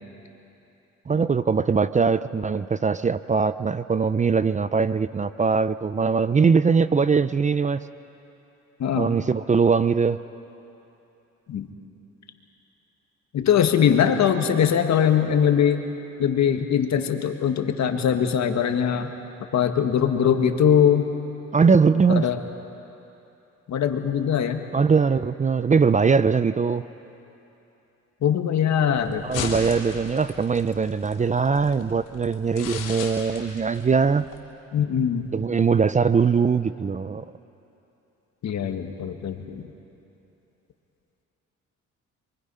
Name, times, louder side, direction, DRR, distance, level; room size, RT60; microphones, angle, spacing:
voice 1, 1.1-7.8 9.0-10.2 21.5-22.3 24.7-26.8 29.2-34.3 35.3-37.2, right 5 dB, 25° right, 14 dB, 0.5 m, -21 dB
voice 2, 8.8-9.2 11.5-11.7 13.3-15.8 16.2-19.1 19.5-21.1 22.1-22.4 23.7-24.6 28.2-29.2 34.7-35.3 38.4-39.7, left 8 dB, 65° left, 5 dB, 1.7 m, -21 dB
sound 1, 29.0-34.4, left 6 dB, 90° left, 3.3 m, -37 dB
28.0 x 23.5 x 5.6 m, 3.0 s
cardioid pair, 90°, 30 cm